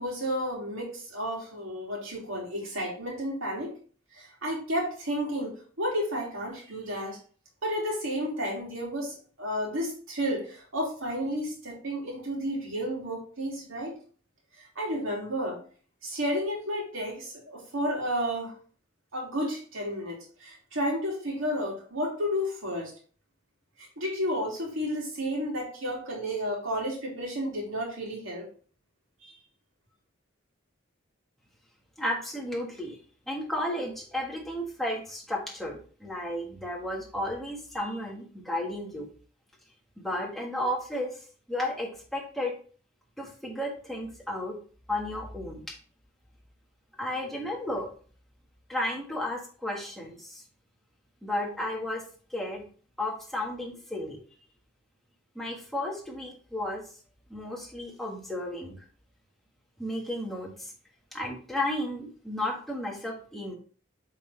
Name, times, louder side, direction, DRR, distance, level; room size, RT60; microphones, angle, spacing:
voice 1, 0.0-3.7 4.1-7.2 7.6-14.0 14.8-15.6 16.0-18.5 19.1-22.9 24.0-28.4 29.2-29.3, equal, 85° right, -2 dB, 2.7 m, -32 dB
voice 2, 32.0-33.0 33.3-39.1 40.0-42.5 43.2-44.6 44.9-45.7 47.0-47.9 48.7-50.4 51.2-52.0 52.3-52.6 53.0-54.2 55.3-56.8 57.3-58.8 59.8-60.7 61.1-63.5, left 1 dB, ahead, -2 dB, 1.5 m, -33 dB
7.5 x 3.9 x 3.3 m, 0.42 s
head